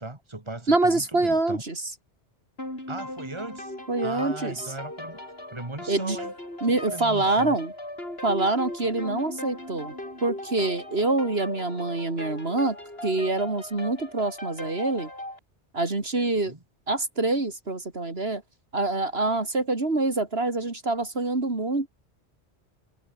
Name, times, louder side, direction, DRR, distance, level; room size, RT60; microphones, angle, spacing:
voice 1, 0.0-1.6 2.9-3.7 4.0-5.2 5.5-6.3 6.7-7.6 16.4-16.6, right 2 dB, 25° right, 3.0 m, -38 dB
voice 2, 0.7-1.8 3.9-4.6 5.9-6.2 6.6-7.7 8.2-9.9 10.2-12.8 13.0-15.1 15.7-16.5 16.9-18.4 18.7-21.9, right 2 dB, 60° right, 3.3 m, -25 dB
sound 1, 2.6-15.4, left 1 dB, 60° left, 8.2 m, -38 dB
omnidirectional pair, 1.2 m